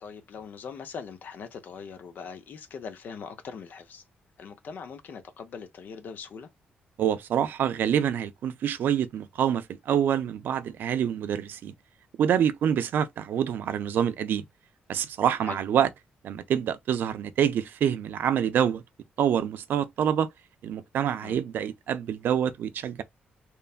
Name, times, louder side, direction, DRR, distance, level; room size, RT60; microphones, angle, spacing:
voice 1, 0.0-4.0 4.4-6.5 15.4-15.6 21.2-21.4, left 6 dB, 60° left, 0.6 m, -41 dB
voice 2, 7.0-11.7 12.2-14.4 14.9-15.9 16.2-18.8 19.2-20.3 20.6-23.0, right 9 dB, 70° right, 0.4 m, -26 dB
3.1 x 2.1 x 2.3 m
cardioid pair, 120°, 3 cm